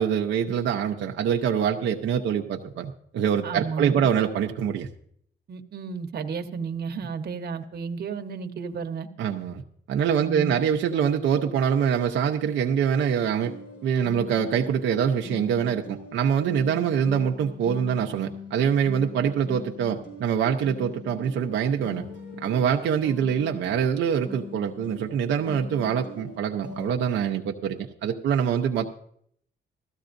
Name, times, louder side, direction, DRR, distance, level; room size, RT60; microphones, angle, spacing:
voice 1, 0.0-4.9 9.2-9.6 9.9-13.5 13.8-22.1 22.4-28.9, right 8 dB, 85° right, 2 dB, 0.7 m, -25 dB
voice 2, 3.4-4.1 5.5-9.1 10.2-10.6, right 5 dB, 60° right, 5 dB, 1.1 m, -32 dB
sound 1, 13.4-26.9, left 3 dB, 80° left, 5.1 m, -42 dB
16.0 x 13.5 x 2.6 m, 0.65 s
cardioid pair, 100°, 19 cm